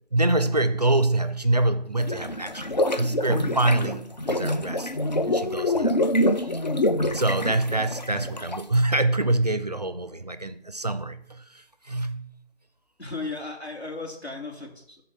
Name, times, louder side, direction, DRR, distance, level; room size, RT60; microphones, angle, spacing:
voice 1, 0.1-4.9 5.3-6.0 6.4-6.6 7.1-12.3, right 2 dB, 40° right, 0.5 m, -25 dB
sound 1, 2.0-8.7, left 1 dB, 45° left, 0.5 m, -26 dB
voice 2, 13.0-15.0, left 3 dB, 90° left, 3.1 m, -36 dB
12.5 x 4.2 x 4.4 m
figure-of-eight pair, 155°, 32 cm